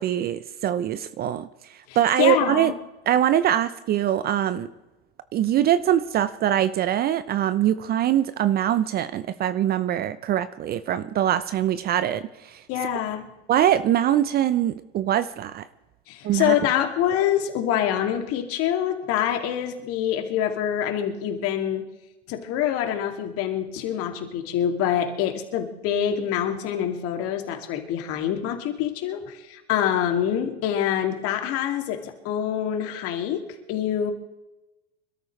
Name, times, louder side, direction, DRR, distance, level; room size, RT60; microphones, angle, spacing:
voice 1, 0.0-1.5 2.0-2.7 3.1-4.7 5.3-12.6 13.5-15.7 16.2-16.5, right 11 dB, 30° right, 14 dB, 0.7 m, -23 dB
voice 2, 1.9-2.7 12.7-13.3 16.1-21.9 22.3-34.1, left 10 dB, 45° left, 4 dB, 2.6 m, -26 dB
26.5 x 13.5 x 3.3 m, 1.0 s
hypercardioid pair, 95°, 32 cm